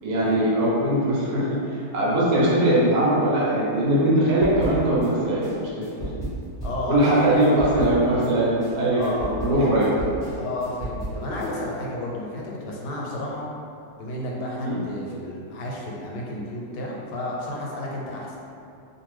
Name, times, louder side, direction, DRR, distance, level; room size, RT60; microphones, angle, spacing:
voice 1, 0.0-6.1 6.9-10.0 14.6-14.8, right 1 dB, 75° right, -6 dB, 1.2 m, -21 dB
sound 1, 4.4-5.1 5.4-8.3 8.6-11.5, right 1 dB, 20° right, 1.1 m, -34 dB
voice 2, 6.6-7.6 8.9-9.8 10.4-13.5 14.0-18.4, left 1 dB, 90° left, -3 dB, 1.2 m, -31 dB
2.6 x 2.5 x 3.1 m, 2.5 s
omnidirectional pair, 1.8 m